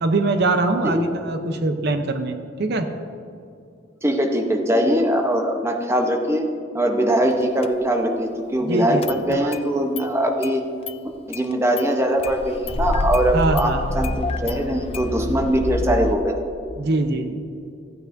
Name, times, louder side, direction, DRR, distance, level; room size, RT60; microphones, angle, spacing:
voice 1, 0.0-2.9 8.7-9.0 9.3-9.5 13.3-13.8 16.8-17.4, right 2 dB, 60° right, 7 dB, 0.6 m, -22 dB
voice 2, 4.0-6.5 6.7-10.6 11.3-16.4, right 1 dB, 15° right, 3 dB, 0.8 m, -21 dB
Engine starting, 7.6-7.7 9.0-9.6 10.0-10.1 10.4-10.5 10.9-11.0 11.3-11.9 12.2-16.2, left 2 dB, 30° left, 0.4 m, -27 dB
14.5 x 9.1 x 2.6 m, 2.5 s
head